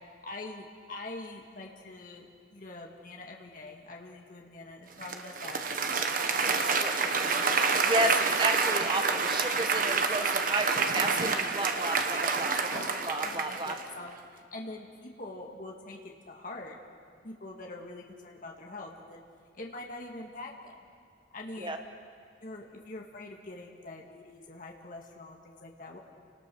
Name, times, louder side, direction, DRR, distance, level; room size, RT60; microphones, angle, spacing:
voice 1, 0.2-2.3 2.5-5.6 6.5-6.6 12.7-12.9 13.2-16.0 16.3-16.8 17.2-19.2 19.6-20.8 21.3-21.8 22.4-26.0, left 2 dB, 50° left, 0 dB, 2.0 m, -44 dB
Applause, 5.0-13.9, right 4 dB, 50° right, 1.3 m, -28 dB
voice 2, 6.6-7.3 7.8-12.6 12.9-13.7 21.6-21.8, right 2 dB, 25° right, 6 dB, 1.2 m, -32 dB
30.0 x 19.5 x 6.3 m, 2.3 s
head